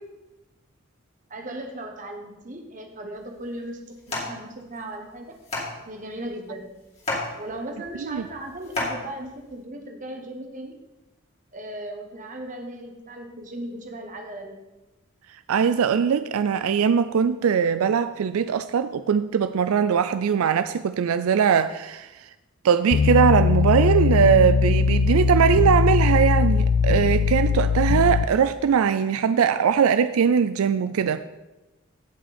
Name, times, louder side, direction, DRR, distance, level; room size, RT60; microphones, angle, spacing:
voice 1, 1.3-5.4 5.8-6.7 7.4-10.8 11.5-14.6 25.2-25.5, right 1 dB, 35° right, 3 dB, 1.4 m, -37 dB
sound 1, 3.2-9.6, left 2 dB, 30° left, 2.5 m, -34 dB
voice 2, 15.5-22.1 22.6-31.2, right 7 dB, 80° right, 12 dB, 0.4 m, -21 dB
sound 2, 22.9-28.2, left 6 dB, 85° left, 0.4 m, -20 dB
16.0 x 5.6 x 4.3 m, 1.1 s
head